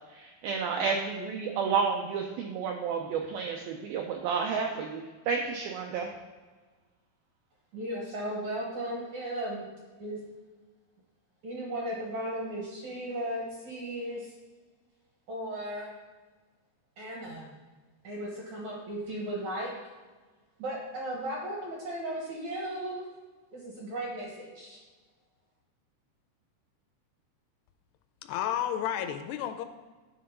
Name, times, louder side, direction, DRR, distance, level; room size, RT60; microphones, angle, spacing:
voice 1, 0.2-5.0 5.3-6.1, right 5 dB, 90° right, 1 dB, 2.1 m, -31 dB
voice 2, 7.7-9.7 10.0-10.2 11.4-14.3 15.3-15.9 17.0-17.5 18.0-19.7 20.6-23.1 23.5-24.8, right 1 dB, 70° right, -3 dB, 1.8 m, -36 dB
voice 3, 28.2-29.7, left 10 dB, 85° left, 8 dB, 2.5 m, -31 dB
10.5 x 3.7 x 5.2 m, 1.3 s
omnidirectional pair, 4.9 m